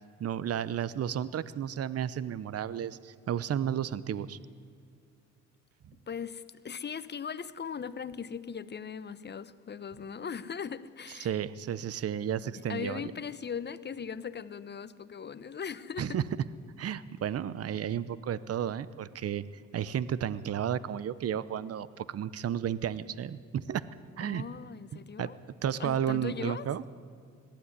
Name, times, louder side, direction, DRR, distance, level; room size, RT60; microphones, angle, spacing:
voice 1, 0.2-4.4 11.2-13.0 16.0-16.2 16.8-19.4 19.7-23.9 24.2-24.4 25.2-25.3 25.6-26.8, right 9 dB, 50° right, 0.9 m, -32 dB
voice 2, 6.1-11.4 12.5-16.2 24.2-25.4 25.8-26.7, left 6 dB, 35° left, 1.0 m, -39 dB
20.5 x 15.0 x 9.7 m
cardioid pair, 90°, 30 cm